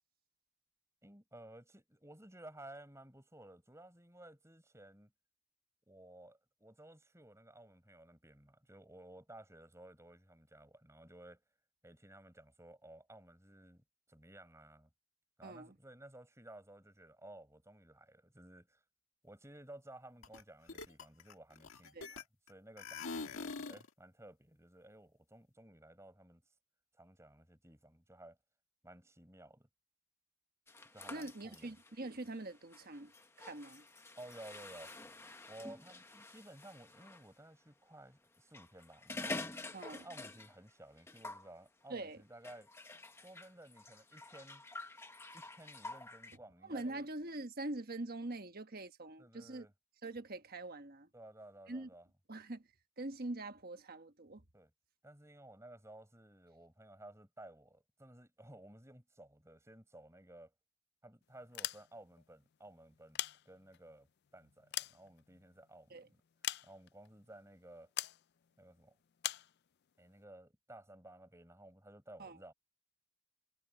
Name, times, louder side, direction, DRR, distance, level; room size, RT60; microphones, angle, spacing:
voice 1, 1.0-5.1 5.9-11.4 11.8-14.9 15.4-18.8 19.2-26.4 27.0-28.4 28.8-29.7 30.9-31.8 34.2-34.9 35.5-39.4 39.9-42.7 43.2-44.6 45.3-47.1 49.2-49.7 51.1-52.1 54.5-54.7 55.0-60.5 61.0-66.2 66.6-67.9 68.6-69.0 70.0-72.5, right 1 dB, 15° right, 5.5 m, -56 dB
voice 2, 15.4-15.7 21.9-22.1 31.1-33.1 33.4-33.8 39.7-40.1 41.9-42.2 46.6-49.7 50.0-51.1 51.7-51.9 52.3-52.6 53.0-54.4 65.9-66.1 72.2-72.4, right 2 dB, 40° right, 1.3 m, -44 dB
sound 1, 20.2-20.4 20.7-22.5 22.8-23.9, left 4 dB, 65° left, 1.6 m, -44 dB
sound 2, 30.7-37.3 38.3-40.7 41.0-41.5 42.4-46.4, left 2 dB, 10° left, 1.0 m, -48 dB
sound 3, 61.4-62.2 62.9-63.9 64.4-65.7 66.4-67.1 68.0-68.2 69.2-69.5, left 14 dB, 45° left, 0.4 m, -41 dB
head